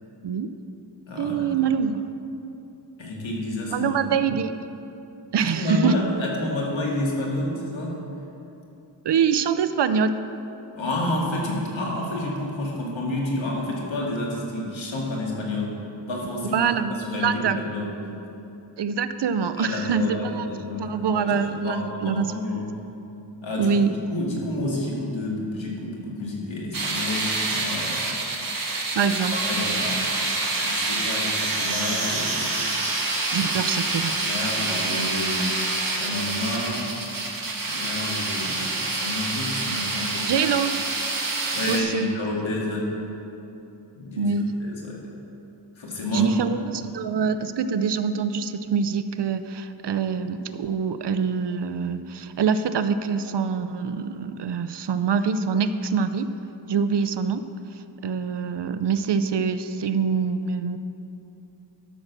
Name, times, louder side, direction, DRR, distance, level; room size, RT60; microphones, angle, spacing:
voice 1, 0.2-0.5 1.2-2.0 3.7-4.6 5.3-6.0 9.0-10.2 16.5-17.6 18.8-20.5 20.8-22.3 23.6-23.9 28.9-29.4 33.3-34.1 40.3-40.7 41.7-42.1 44.2-44.5 46.1-56.3 56.7-57.4 58.0-60.8, right 6 dB, 65° right, 11 dB, 0.6 m, -24 dB
voice 2, 1.1-1.5 3.0-3.9 5.4-8.0 10.8-15.8 16.1-17.9 19.6-21.3 21.6-22.6 23.4-23.7 24.1-28.1 29.0-30.2 30.6-32.7 33.9-35.6 35.9-36.8 37.6-40.3 41.5-42.9 43.9-45.0 45.8-46.3 46.7-46.8, left 1 dB, 85° left, -3 dB, 2.2 m, -29 dB
sound 1, 26.7-41.8, right 2 dB, 45° right, 1.7 m, -27 dB
12.5 x 6.5 x 6.2 m, 2.9 s
wide cardioid pair, 110°, 45 cm